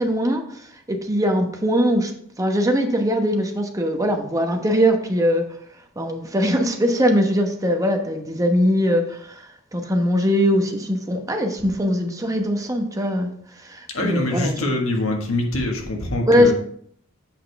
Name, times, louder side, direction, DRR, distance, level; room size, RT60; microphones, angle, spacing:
voice 1, 0.0-2.1 2.4-5.4 6.0-9.4 9.7-13.3 13.6-14.5 16.3-16.5, equal, 15° right, 3 dB, 1.0 m, -21 dB
voice 2, 13.9-16.5, left 1 dB, 90° left, 2 dB, 1.6 m, -24 dB
7.8 x 6.4 x 3.5 m, 0.64 s
head